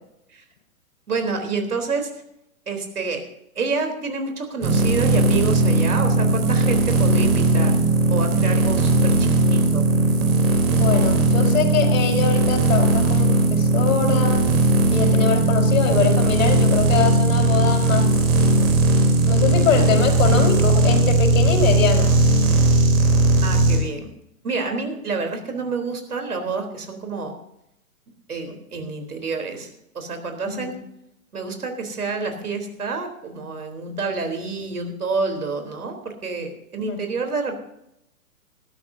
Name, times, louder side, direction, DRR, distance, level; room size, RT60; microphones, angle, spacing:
voice 1, 1.1-2.1 2.7-3.2 3.6-7.8 8.1-9.8 23.4-24.1 24.4-27.3 28.3-29.7 29.9-30.7 31.3-37.6, right 4 dB, 80° right, 5 dB, 3.9 m, -28 dB
sound 1, 4.6-23.8, right 2 dB, 30° right, 3.7 m, -18 dB
voice 2, 9.0-9.4 10.7-14.5 14.9-18.2 19.3-22.2 30.4-30.7 36.8-37.0, left 6 dB, 60° left, 4 dB, 5.0 m, -24 dB
20.5 x 13.0 x 2.8 m, 0.81 s
hypercardioid pair, 125°, 44 cm